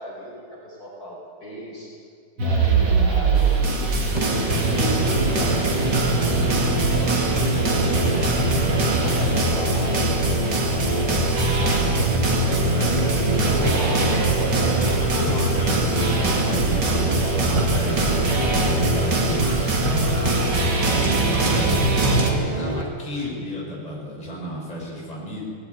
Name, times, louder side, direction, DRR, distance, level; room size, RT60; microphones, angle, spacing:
voice 1, 0.0-1.9 2.4-3.9 4.6-12.6 13.6-15.6 16.7-17.7, equal, 40° left, -4 dB, 5.6 m, -36 dB
sound 1, 2.4-22.3, right 3 dB, 55° right, 3.2 m, -22 dB
sound 2, 4.1-22.8, equal, 20° right, 1.8 m, -28 dB
voice 2, 12.5-14.0 14.6-25.4, left 1 dB, 15° left, -4 dB, 5.9 m, -33 dB
18.5 x 17.0 x 9.5 m, 2.4 s
omnidirectional pair, 2.4 m